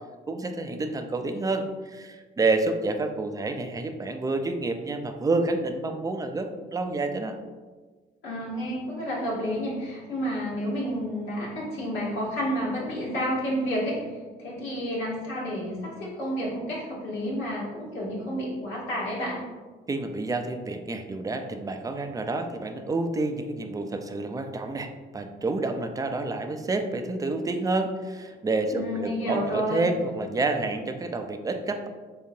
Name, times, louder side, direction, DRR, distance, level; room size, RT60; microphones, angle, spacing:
voice 1, 0.3-7.4 19.9-31.9, right 3 dB, 20° right, 6 dB, 0.4 m, -29 dB
voice 2, 8.2-19.4 28.7-29.8, equal, 85° left, -5 dB, 1.4 m, -30 dB
3.7 x 3.7 x 2.7 m, 1.4 s
cardioid pair, 90°, 20 cm